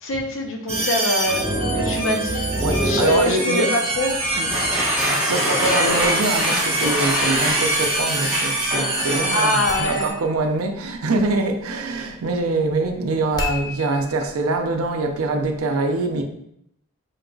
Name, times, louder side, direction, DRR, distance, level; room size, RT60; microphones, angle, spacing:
voice 1, 0.0-1.5 1.7-2.4 2.8-4.1 9.3-10.1, left 1 dB, 60° left, 2 dB, 0.6 m, -23 dB
sound 1, 0.7-10.1, right 1 dB, 30° right, 1.0 m, -24 dB
voice 2, 2.6-3.8 4.4-4.5 5.1-16.2, right 2 dB, 85° right, 5 dB, 0.5 m, -24 dB
sound 2, 4.3-9.9, equal, 5° right, 1.1 m, -25 dB
sound 3, 5.9-15.6, left 3 dB, 20° left, 0.4 m, -38 dB
3.8 x 3.8 x 2.3 m, 0.75 s
head